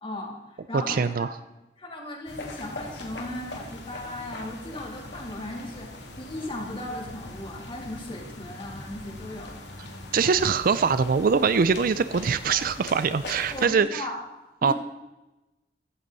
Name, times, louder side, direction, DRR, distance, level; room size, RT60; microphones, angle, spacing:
voice 1, 0.0-0.4 0.7-1.3 1.8-9.5 13.5-14.2 14.6-14.7, left 1 dB, 30° left, -1 dB, 3.1 m, -37 dB
voice 2, 0.9-1.3 10.1-14.0 14.6-14.7, right 5 dB, 50° right, 14 dB, 0.4 m, -23 dB
sound 1, 2.3-13.7, left 2 dB, 70° left, 2.5 m, -41 dB
15.5 x 14.0 x 4.1 m, 1.1 s
head